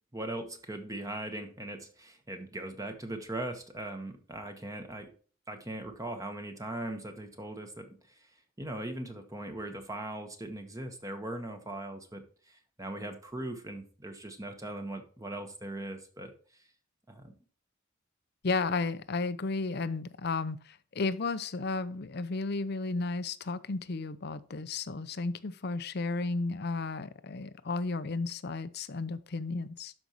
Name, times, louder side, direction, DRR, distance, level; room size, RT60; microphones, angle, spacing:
voice 1, 0.1-5.1 5.5-7.9 8.6-16.3 17.1-17.3, right 1 dB, 15° right, 5 dB, 1.2 m, -39 dB
voice 2, 18.4-29.9, left 3 dB, 55° left, 15 dB, 0.6 m, -33 dB
12.5 x 5.3 x 3.0 m, 0.41 s
head